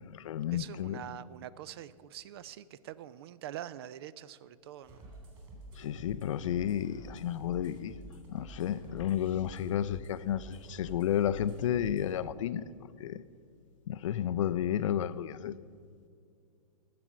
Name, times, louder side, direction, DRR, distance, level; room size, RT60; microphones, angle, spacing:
voice 1, 0.0-1.0 5.8-7.9 8.3-12.6 13.0-13.2 13.9-15.5, left 10 dB, 55° left, 0.4 m, -32 dB
voice 2, 0.5-5.1, right 11 dB, 40° right, 0.4 m, -45 dB
sound 1, 4.8-12.2, right 1 dB, 25° right, 3.2 m, -49 dB
11.0 x 6.7 x 7.1 m
hypercardioid pair, 120°, 19 cm